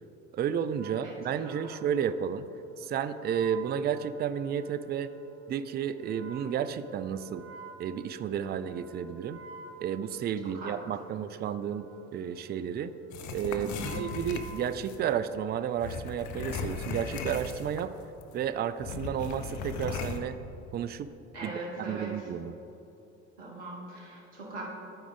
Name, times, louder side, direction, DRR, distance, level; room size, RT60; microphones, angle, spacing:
voice 1, 0.3-2.5 2.8-5.1 5.5-7.4 7.8-9.4 9.8-12.9 13.3-17.9 18.3-20.4 20.7-21.1 21.4-21.5 21.8-22.5, right 8 dB, 30° right, 12 dB, 0.4 m, -32 dB
Wind instrument woodwind instrument, 0.6-15.4, right 5 dB, 45° right, 0.8 m, -49 dB
voice 2, 0.9-1.8 10.5-10.7 11.1-11.2 13.6-14.0 21.3-22.3 23.4-24.7, right 2 dB, 80° right, -5 dB, 1.6 m, -41 dB
sound 1, 13.1-15.0 15.8-17.9 18.2-18.3 18.8-20.2, left 5 dB, 55° left, 0.8 m, -37 dB
12.0 x 4.9 x 3.7 m, 2.9 s
hypercardioid pair, 60°, 34 cm